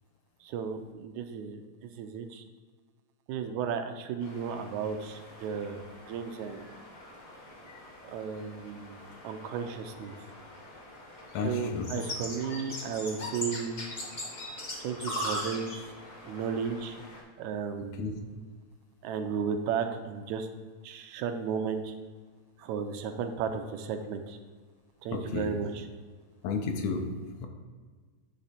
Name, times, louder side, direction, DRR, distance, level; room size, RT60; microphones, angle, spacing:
voice 1, 0.4-1.6 2.0-2.4 3.3-6.7 8.1-9.0 9.2-10.1 11.4-13.8 14.8-15.7 16.2-17.0 17.4-18.0 19.0-20.5 20.8-21.9 22.6-24.4 25.0-25.9, right 6 dB, 80° right, 7 dB, 1.9 m, -34 dB
sound 1, 4.2-17.2, left 1 dB, 50° left, 1.0 m, -41 dB
voice 2, 11.3-12.0 18.0-18.1 25.1-25.5 26.4-27.1 27.4-27.5, left 4 dB, 75° left, 4 dB, 1.8 m, -32 dB
9.7 x 3.3 x 4.1 m, 1.5 s
omnidirectional pair, 3.3 m